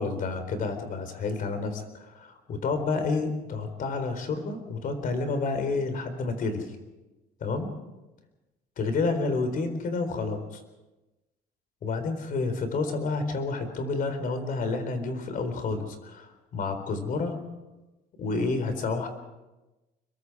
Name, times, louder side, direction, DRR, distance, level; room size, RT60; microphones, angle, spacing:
voice 1, 0.0-6.7 7.4-7.7 8.8-10.6 11.8-17.4 18.2-19.1, left 3 dB, 55° left, 8 dB, 4.1 m, -29 dB
25.5 x 22.5 x 4.8 m, 1.1 s
cardioid pair, 110°, 17 cm